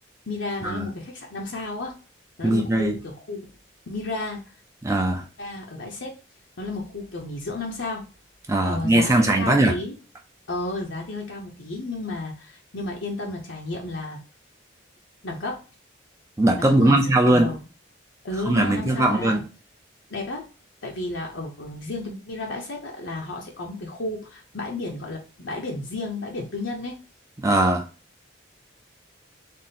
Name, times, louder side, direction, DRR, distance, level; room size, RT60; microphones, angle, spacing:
voice 1, 0.3-1.9 2.4-3.5 3.9-4.4 5.4-6.1 6.6-8.1 8.6-10.0 10.5-14.2 15.2-15.6 16.6-17.0 17.3-17.6 18.2-19.4 20.1-20.5 20.8-27.0, left 2 dB, 75° left, 0.8 m, -32 dB
voice 2, 2.4-3.0 4.8-5.2 8.5-9.8 16.4-17.5 18.5-19.4 27.4-27.8, right 1 dB, 15° right, 0.4 m, -20 dB
3.6 x 2.1 x 4.1 m
head